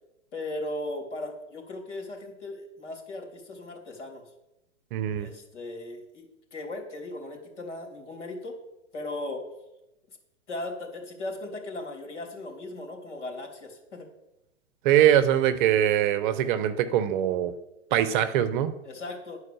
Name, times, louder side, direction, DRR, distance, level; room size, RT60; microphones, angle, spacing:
voice 1, 0.3-4.2 5.1-8.6 8.9-9.4 10.5-14.1 18.8-19.4, left 2 dB, 70° left, 2 dB, 3.1 m, -37 dB
voice 2, 4.9-5.3 14.8-17.5 17.9-18.7, right 11 dB, 40° right, 12 dB, 0.8 m, -22 dB
11.0 x 4.8 x 6.8 m, 0.91 s
hypercardioid pair, 120°, 37 cm